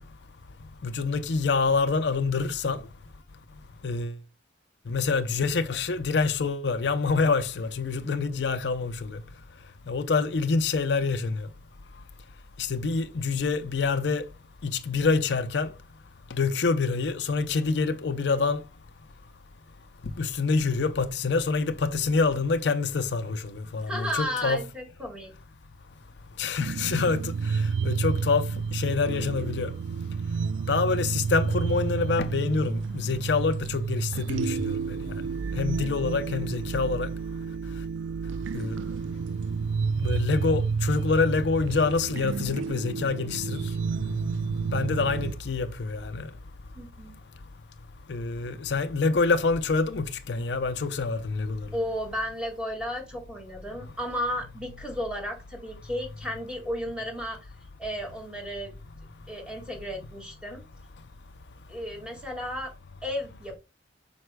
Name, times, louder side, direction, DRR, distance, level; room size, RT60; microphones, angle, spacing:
voice 1, 0.8-2.8 3.8-4.1 4.9-9.2 9.9-11.5 12.6-14.2 14.6-15.7 16.3-18.6 20.2-24.6 26.4-29.7 30.7-35.0 35.6-37.1 38.5-38.8 40.0-43.6 44.1-46.3 48.1-51.7, left 4 dB, 65° left, 0.5 m, -26 dB
voice 2, 23.9-25.3 46.7-47.2 51.7-57.5 57.8-58.7 59.3-60.6 61.7-62.7 63.0-63.6, equal, 5° right, 1.9 m, -33 dB
sound 1, 26.6-45.3, right 5 dB, 85° right, 0.3 m, -30 dB
7.8 x 5.5 x 2.2 m
head